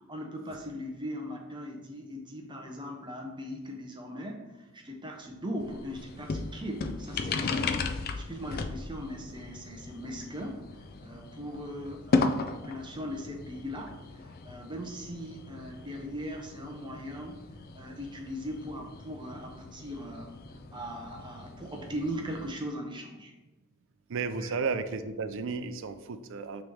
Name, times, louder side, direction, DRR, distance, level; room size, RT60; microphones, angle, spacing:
voice 1, 0.0-17.4 17.7-20.4 20.7-23.3 24.4-24.6, equal, 20° right, 1 dB, 0.6 m, -39 dB
sound 1, 5.6-22.5, left 4 dB, 45° left, 0.4 m, -36 dB
voice 2, 24.1-26.6, right 4 dB, 60° right, 10 dB, 0.5 m, -33 dB
8.7 x 3.1 x 3.6 m, 1.1 s
head